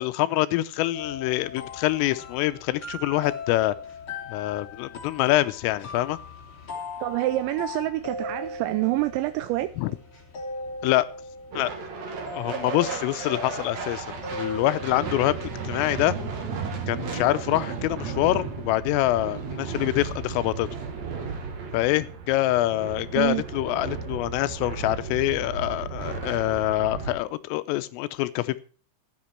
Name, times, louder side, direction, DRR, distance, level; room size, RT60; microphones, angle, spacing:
voice 1, 0.0-3.8 4.3-6.2 9.8-9.9 10.8-11.1 11.5-11.7 12.3-14.1 14.3-16.2 16.9-20.7 21.7-28.6, left 16 dB, 90° left, 3.4 m, -25 dB
Emotional Piano Background Music, 0.9-19.6, left 3 dB, 35° left, 2.6 m, -40 dB
voice 2, 7.0-9.7 23.2-23.4, right 17 dB, 80° right, 2.7 m, -26 dB
sound 1, 11.5-27.1, right 5 dB, 50° right, 2.2 m, -34 dB
14.0 x 9.5 x 4.5 m
omnidirectional pair, 5.8 m